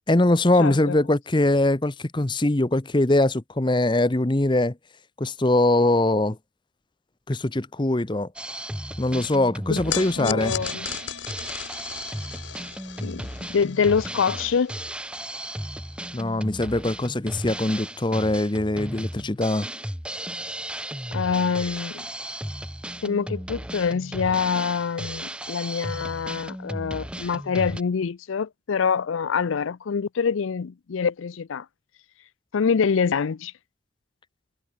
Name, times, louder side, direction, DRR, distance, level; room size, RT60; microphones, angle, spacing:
voice 1, 0.1-4.8 5.2-6.4 7.3-8.3 9.0-10.5 16.1-19.7, left 1 dB, 25° left, 0.8 m, -22 dB
voice 2, 0.6-0.9 9.7-10.9 13.0-13.3 13.5-14.7 21.1-22.1 23.0-31.7 32.5-33.5, left 6 dB, 85° left, 0.5 m, -25 dB
Drum kit, 8.4-27.8, right 1 dB, 5° right, 2.2 m, -35 dB
sound 1, 9.9-16.3, left 9 dB, 70° left, 2.2 m, -37 dB
head